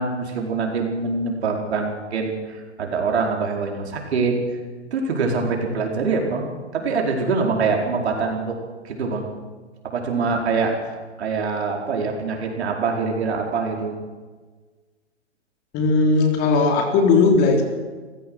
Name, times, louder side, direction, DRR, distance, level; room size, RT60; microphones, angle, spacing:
voice 1, 0.0-4.4 4.9-8.5 8.8-9.3 9.9-14.0, right 4 dB, 65° right, 1 dB, 4.8 m, -24 dB
voice 2, 15.7-17.6, left 4 dB, 30° left, 3 dB, 3.5 m, -17 dB
27.0 x 15.5 x 6.4 m, 1.4 s
hypercardioid pair, 135°, 36 cm